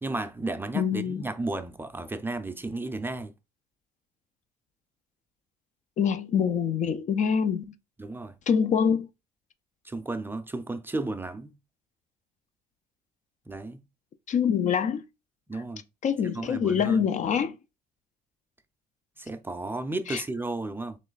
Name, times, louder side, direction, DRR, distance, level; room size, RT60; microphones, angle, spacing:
voice 1, 0.0-3.3 8.0-8.4 9.8-11.5 13.5-13.8 15.5-15.8 16.3-17.1 19.2-21.0, right 2 dB, 10° right, 0.5 m, -33 dB
voice 2, 0.7-1.2 6.0-7.7 8.5-9.1 14.3-15.0 15.5-15.6 16.0-17.5 20.1-20.2, left 7 dB, 45° left, 0.4 m, -25 dB
3.2 x 3.1 x 3.9 m
cardioid pair, 110°, 17 cm